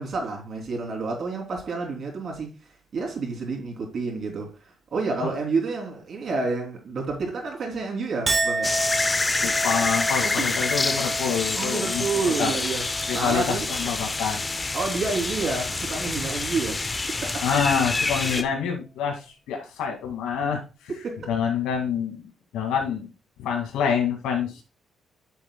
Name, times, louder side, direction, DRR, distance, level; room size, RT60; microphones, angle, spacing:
voice 1, 0.0-8.8 10.2-10.6 11.5-12.9 13.1-13.7 14.7-16.9 17.2-17.4 18.4-18.5 21.0-21.3, right 4 dB, 55° right, 3.2 m, -29 dB
Chink clink, 8.3-14.8 15.2-15.8, right 2 dB, 30° right, 0.9 m, -32 dB
sound 1, 8.6-18.4, left 3 dB, 25° left, 0.7 m, -27 dB
voice 2, 9.4-12.0 12.4-12.5 13.1-14.7 17.4-20.6 21.3-22.2 22.5-23.1 23.4-24.6, left 7 dB, 90° left, 2.2 m, -27 dB
10.5 x 6.5 x 2.3 m
cardioid pair, 90°, 0 cm